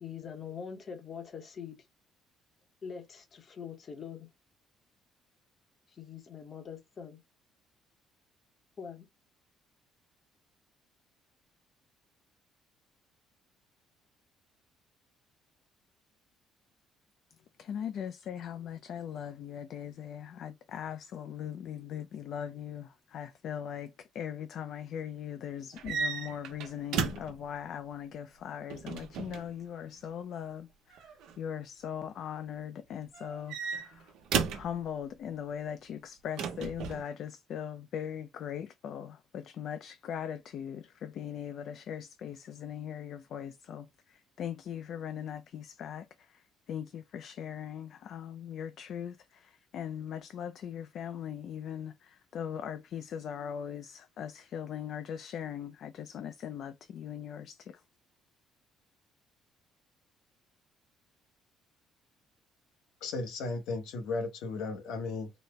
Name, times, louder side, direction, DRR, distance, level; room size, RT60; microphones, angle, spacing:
voice 1, 0.0-1.8 2.8-4.3 5.9-7.2 8.8-9.1, left 7 dB, 35° left, 0.8 m, -43 dB
voice 2, 17.6-34.1 34.5-57.8, left 9 dB, 55° left, 0.3 m, -40 dB
sound 1, 25.8-27.4 28.7-29.5 30.9-31.3 33.1-34.7 36.4-37.0, right 6 dB, 80° right, 0.9 m, -34 dB
voice 3, 63.0-65.3, left 3 dB, 90° left, 1.0 m, -35 dB
4.0 x 2.1 x 3.2 m
cardioid pair, 150°, 0 cm